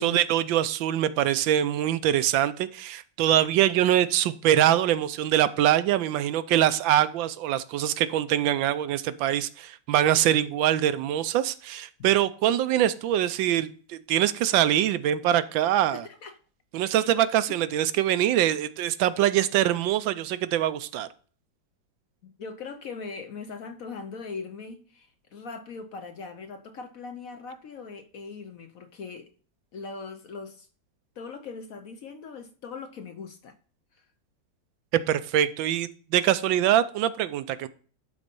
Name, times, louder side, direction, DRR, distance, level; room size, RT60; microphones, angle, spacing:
voice 1, 0.0-16.0 16.7-21.1 34.9-37.7, right 11 dB, 80° right, 1.4 m, -24 dB
voice 2, 15.9-16.4 16.8-17.1 22.2-29.3 29.7-30.7 31.2-33.5, left 4 dB, 60° left, 1.0 m, -40 dB
12.0 x 4.1 x 5.3 m
omnidirectional pair, 2.1 m